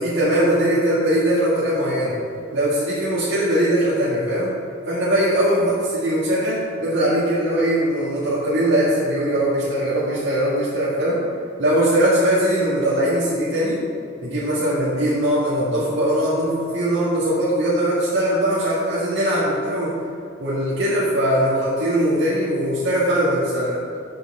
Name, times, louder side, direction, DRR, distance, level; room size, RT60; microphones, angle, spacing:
voice 1, 0.0-2.1 2.5-4.5 4.9-11.2 11.6-13.8 14.2-19.9 20.4-23.8, right 1 dB, 75° right, -9 dB, 1.8 m, -20 dB
7.7 x 5.8 x 6.1 m, 2.4 s
head